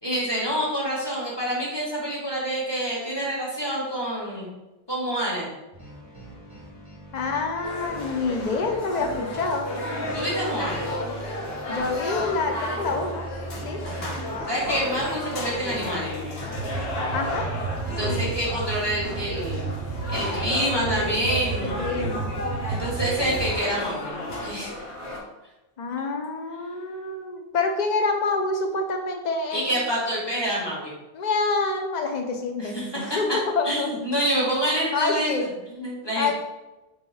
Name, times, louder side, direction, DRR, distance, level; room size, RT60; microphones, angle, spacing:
voice 1, 0.0-4.5 4.9-5.5 10.1-10.9 13.8-14.2 14.5-16.1 17.9-19.7 20.1-21.7 22.7-24.1 24.4-24.7 29.5-30.9 32.6-33.2 33.6-35.3 35.7-36.3, right 1 dB, 25° left, -7 dB, 1.4 m, -27 dB
sound 1, 5.7-16.8, equal, 20° right, 0.9 m, -40 dB
voice 2, 7.1-9.7 11.7-13.3 13.6-13.8 17.1-17.5 18.0-18.2 20.6-21.3 21.6-22.4 25.8-29.8 31.1-33.9 34.9-35.5 36.2-36.3, left 3 dB, 50° left, 4 dB, 0.6 m, -27 dB
sound 2, 7.6-25.2, left 1 dB, 75° left, 1.1 m, -33 dB
sound 3, 16.5-23.6, right 4 dB, 65° right, 0.7 m, -32 dB
3.6 x 3.0 x 4.2 m, 1.0 s
omnidirectional pair, 1.0 m